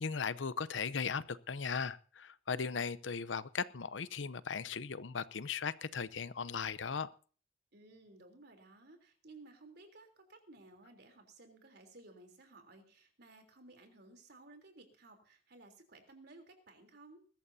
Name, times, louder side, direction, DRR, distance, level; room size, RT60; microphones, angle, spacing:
voice 1, 0.0-7.1, left 5 dB, 80° left, 0.7 m, -37 dB
voice 2, 7.7-17.2, right 2 dB, 60° right, 3.5 m, -57 dB
21.0 x 14.0 x 2.8 m
head